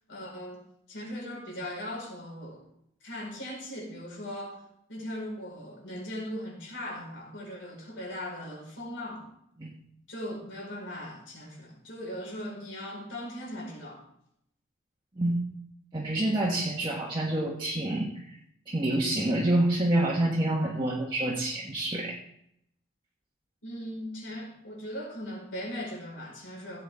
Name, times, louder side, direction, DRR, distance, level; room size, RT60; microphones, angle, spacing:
voice 1, 0.1-0.6 0.9-2.6 3.0-4.6 4.9-9.3 10.1-14.0 23.6-26.8, equal, 70° left, -1 dB, 4.7 m, -39 dB
voice 2, 15.9-18.4 18.7-22.2, right 1 dB, 25° right, -3 dB, 1.4 m, -27 dB
16.0 x 8.4 x 3.6 m, 0.74 s
head